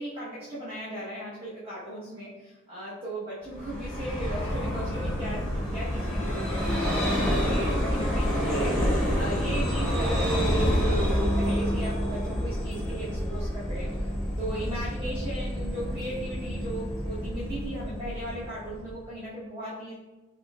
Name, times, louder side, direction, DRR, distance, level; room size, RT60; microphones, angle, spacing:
voice 1, 0.0-7.1 7.3-13.9 14.4-19.9, right 1 dB, 30° right, -10 dB, 0.9 m, -37 dB
Vehicle, 3.5-19.0, equal, 5° left, 0.9 m, -28 dB
5.1 x 2.6 x 2.2 m, 1.1 s
head